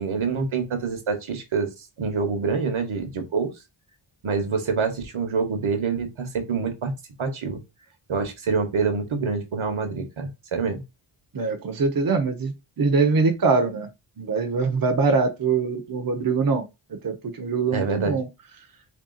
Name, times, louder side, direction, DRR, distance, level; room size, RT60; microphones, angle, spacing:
voice 1, 0.0-1.7 2.0-3.5 4.2-6.9 7.2-7.6 8.1-10.8 17.7-18.2, right 5 dB, 70° right, 1.1 m, -26 dB
voice 2, 11.3-13.9 14.2-16.6 16.9-18.3, right 4 dB, 45° right, 0.7 m, -23 dB
3.3 x 2.8 x 3.8 m
wide cardioid pair, 105°, 50 cm